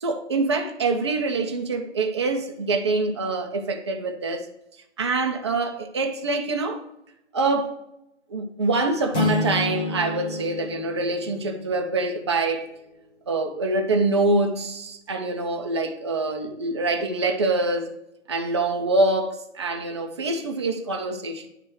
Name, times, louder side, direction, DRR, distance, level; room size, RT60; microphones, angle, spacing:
voice 1, 0.0-4.5 5.0-6.8 7.3-7.8 8.3-12.7 13.3-17.9 18.3-21.5, right 3 dB, 25° right, 0.4 m, -25 dB
sound 1, 9.1-11.9, left 1 dB, 75° left, 1.7 m, -29 dB
9.1 x 3.3 x 4.5 m
hypercardioid pair, 145°, 36 cm